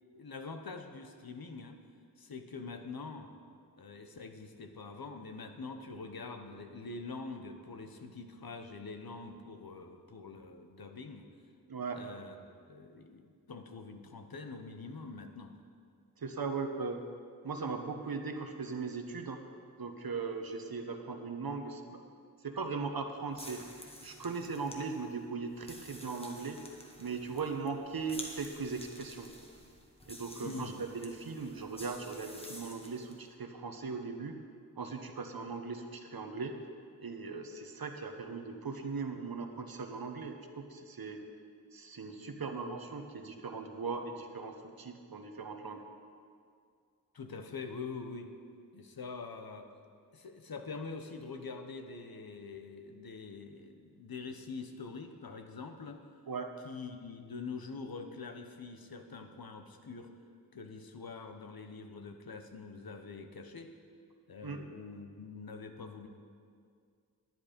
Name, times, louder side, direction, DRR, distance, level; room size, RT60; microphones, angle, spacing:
voice 1, 0.1-1.8 2.2-3.3 3.8-11.3 11.9-15.6 30.4-30.7 47.1-48.3 48.7-49.7 50.1-56.0 56.6-60.1 60.5-63.7 64.3-66.1, left 4 dB, 80° left, 6 dB, 0.9 m, -45 dB
voice 2, 11.7-12.0 16.2-17.0 17.4-19.4 19.8-22.0 22.4-23.6 24.0-26.6 27.0-29.3 30.1-34.4 34.8-36.6 37.0-41.2 41.7-45.8 56.3-56.5 64.4-64.6, right 4 dB, 80° right, 5 dB, 1.0 m, -39 dB
sound 1, 23.3-33.2, left 1 dB, 15° left, 1.4 m, -50 dB
10.5 x 10.5 x 5.2 m, 2.2 s
wide cardioid pair, 65°, 35 cm